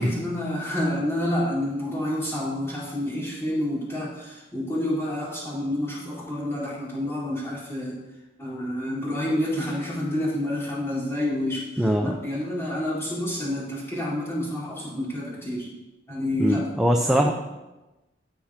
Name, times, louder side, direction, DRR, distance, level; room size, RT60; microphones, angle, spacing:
voice 1, 0.0-8.0 8.4-15.7 16.1-16.7 17.0-17.3, left 1 dB, 15° left, -7 dB, 4.2 m, -29 dB
voice 2, 11.8-12.1 16.4-17.3, equal, 5° right, 1 dB, 0.6 m, -21 dB
16.0 x 6.0 x 5.1 m, 1.1 s
head